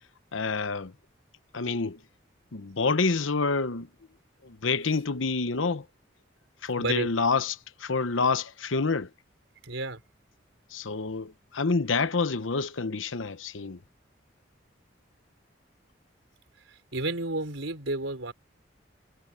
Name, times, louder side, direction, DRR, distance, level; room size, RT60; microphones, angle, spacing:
voice 1, 0.3-0.9 1.5-2.0 2.5-3.9 4.4-5.8 6.6-9.1 10.7-13.8, left 4 dB, 90° left, 1.0 m, -28 dB
voice 2, 6.8-7.1 9.6-10.0 16.7-18.3, right 2 dB, 85° right, 4.6 m, -31 dB
head